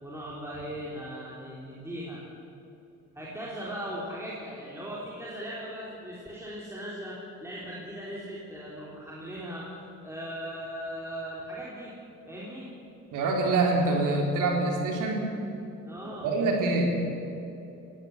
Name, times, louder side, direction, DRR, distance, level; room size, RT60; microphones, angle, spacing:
voice 1, 0.0-2.2 3.1-9.7 10.0-11.9 12.3-12.7 15.8-16.3, equal, 10° right, -6 dB, 4.1 m, -38 dB
voice 2, 13.1-15.3 16.2-17.0, right 2 dB, 75° right, 0 dB, 3.9 m, -25 dB
19.0 x 17.0 x 9.8 m, 2.9 s
cardioid pair, 130°, 31 cm